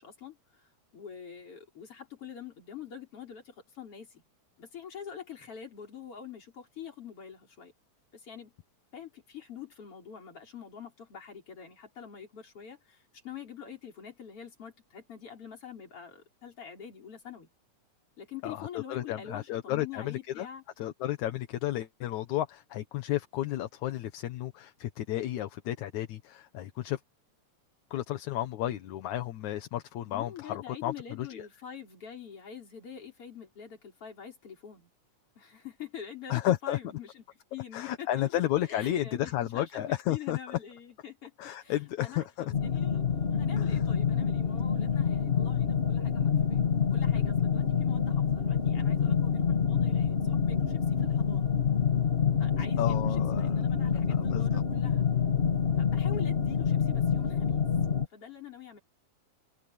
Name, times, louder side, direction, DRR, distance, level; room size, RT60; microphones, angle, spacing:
voice 1, 0.0-4.2 4.6-7.7 8.1-8.5 8.9-17.5 18.2-20.6 30.1-34.9 35.4-37.2 37.5-46.6 46.9-51.5 52.4-55.1 55.8-57.6 58.1-58.8, left 8 dB, 45° left, 5.3 m, -45 dB
voice 2, 18.4-20.5 20.8-27.0 27.9-31.5 36.3-36.8 37.7-40.4 41.4-42.5 43.6-43.8 52.8-53.6 54.1-54.6, left 13 dB, 75° left, 2.5 m, -32 dB
sound 1, 42.5-58.1, left 7 dB, 25° left, 1.6 m, -27 dB
open air
omnidirectional pair, 3.4 m